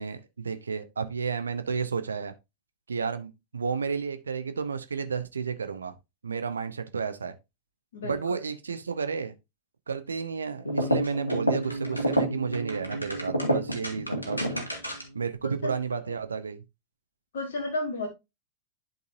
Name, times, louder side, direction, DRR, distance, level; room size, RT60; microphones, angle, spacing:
voice 1, 0.0-2.3 2.9-5.9 6.2-7.3 8.0-9.3 9.9-14.7 15.1-16.6, right 5 dB, 75° right, 0.6 m, -32 dB
voice 2, 7.9-8.4 15.4-16.0 17.3-18.1, left 2 dB, 60° left, 1.4 m, -33 dB
sound 1, 10.6-15.2, right 1 dB, 85° left, 1.6 m, -29 dB
11.0 x 4.0 x 2.6 m
figure-of-eight pair, 90°, 0 cm